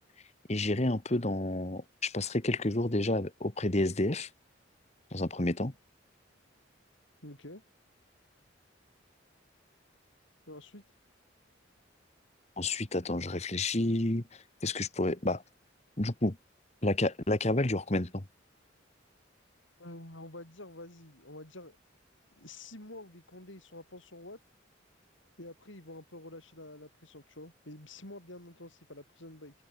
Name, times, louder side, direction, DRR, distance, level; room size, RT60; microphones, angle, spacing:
voice 1, 0.5-4.3 5.1-5.7 12.6-14.2 14.6-15.4 16.0-16.4 16.8-18.2, left 2 dB, 35° left, 1.5 m, -30 dB
voice 2, 7.2-7.6 10.5-10.8 19.8-21.8 22.4-24.4 25.4-29.5, left 1 dB, 80° left, 7.9 m, -48 dB
head